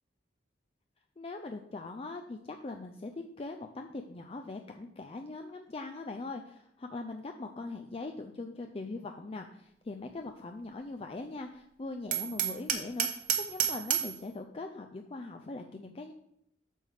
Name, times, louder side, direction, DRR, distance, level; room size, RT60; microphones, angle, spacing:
voice 1, 1.2-16.1, left 3 dB, 30° left, 5 dB, 0.4 m, -41 dB
Hammer, 12.1-14.2, right 9 dB, 50° right, 1.0 m, -30 dB
8.5 x 3.4 x 6.4 m, 0.75 s
head